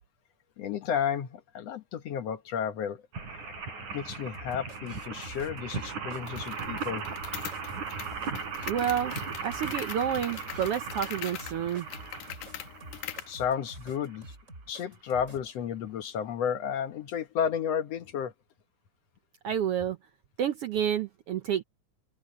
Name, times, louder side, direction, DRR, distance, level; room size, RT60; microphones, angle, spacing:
voice 1, 0.6-3.0 3.9-7.1 13.3-14.3 14.7-18.3, left 8 dB, 65° left, 2.2 m, -32 dB
sound 1, 3.1-14.3 14.9-15.0 15.2-15.3, right 5 dB, 85° right, 6.9 m, -38 dB
sound 2, 4.3-15.5, right 2 dB, 25° right, 5.6 m, -48 dB
sound 3, 6.3-13.4, left 12 dB, 90° left, 2.7 m, -42 dB
voice 2, 8.7-9.1 9.4-11.9 19.4-20.0 20.4-21.6, right 9 dB, 70° right, 1.5 m, -29 dB
omnidirectional pair, 3.4 m